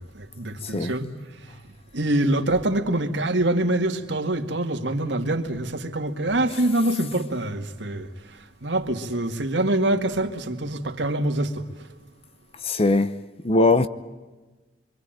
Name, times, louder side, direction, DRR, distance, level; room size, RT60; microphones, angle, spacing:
voice 1, 0.0-11.9, right 1 dB, 85° right, 2.2 m, -25 dB
voice 2, 0.6-0.9 12.6-13.2 13.4-13.9, left 2 dB, 35° left, 0.8 m, -20 dB
25.5 x 24.5 x 9.1 m
head